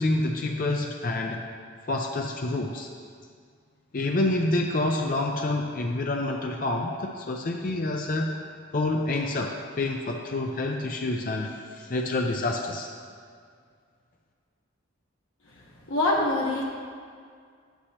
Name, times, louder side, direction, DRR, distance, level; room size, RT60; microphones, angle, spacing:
voice 1, 0.0-1.4 1.8-2.9 3.9-8.3 8.7-12.9, left 2 dB, 45° left, 1 dB, 0.4 m, -28 dB
voice 2, 15.6-16.6, left 2 dB, 85° left, -3 dB, 1.2 m, -25 dB
9.9 x 8.1 x 2.9 m, 2.1 s
head